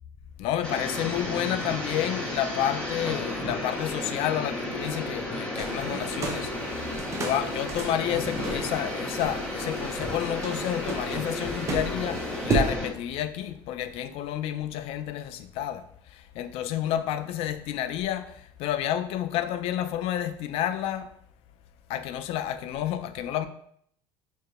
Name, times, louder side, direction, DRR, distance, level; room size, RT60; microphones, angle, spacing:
voice 1, 0.4-15.8 16.1-21.1 21.9-23.5, left 11 dB, 65° left, 0.4 m, -30 dB
sound 1, 0.6-12.9, left 1 dB, 10° left, 1.2 m, -33 dB
sound 2, 5.5-12.7, right 3 dB, 25° right, 0.6 m, -34 dB
4.6 x 2.8 x 2.4 m
cardioid pair, 125°, 11 cm